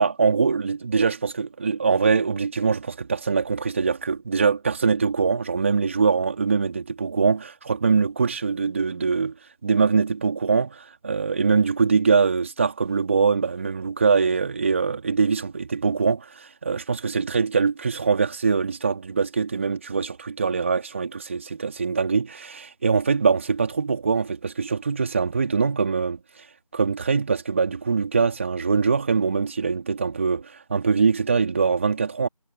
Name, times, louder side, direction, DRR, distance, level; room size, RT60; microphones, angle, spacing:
voice 1, 0.0-9.3 9.6-26.5 26.7-32.3, right 5 dB, 20° right, 3.5 m, -23 dB
figure-of-eight pair, 170°, 19 cm